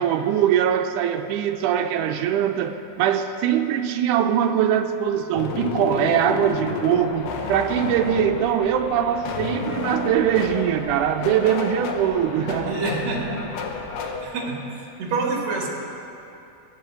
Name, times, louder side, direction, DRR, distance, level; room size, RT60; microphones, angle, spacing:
voice 1, 0.0-12.9 13.2-13.4, right 9 dB, 80° right, 8 dB, 2.0 m, -22 dB
sound 1, 5.4-14.2, left 4 dB, 80° left, 2.6 m, -31 dB
voice 2, 12.6-13.5 14.2-15.7, right 3 dB, 60° right, 0 dB, 2.6 m, -27 dB
16.0 x 5.6 x 7.4 m, 2.8 s
omnidirectional pair, 3.8 m